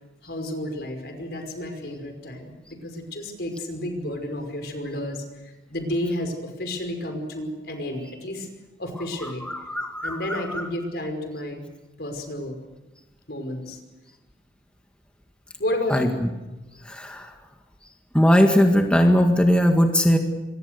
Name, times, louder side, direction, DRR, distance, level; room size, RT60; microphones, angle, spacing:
voice 1, 0.2-8.5 8.8-9.4 10.0-11.6 12.0-12.6 13.3-13.8 15.6-16.2, left 1 dB, 65° left, 5 dB, 5.4 m, -31 dB
voice 2, 9.7-10.4 15.9-16.1 16.9-17.3 18.1-20.2, equal, 5° left, 3 dB, 1.8 m, -18 dB
26.5 x 23.0 x 6.7 m, 1.1 s
head